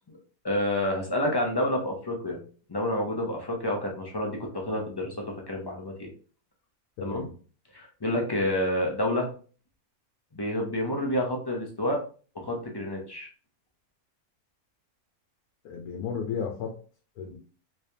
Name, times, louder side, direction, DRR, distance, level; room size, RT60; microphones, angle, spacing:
voice 1, 0.4-2.4 2.7-6.1 7.0-7.3 7.7-9.3 10.3-12.0 12.3-13.3, left 1 dB, 35° left, 0 dB, 0.4 m, -29 dB
voice 2, 7.0-7.3 15.6-16.8 17.2-17.4, left 6 dB, 85° left, 2 dB, 1.2 m, -34 dB
3.3 x 3.3 x 2.7 m, 0.39 s
omnidirectional pair, 1.6 m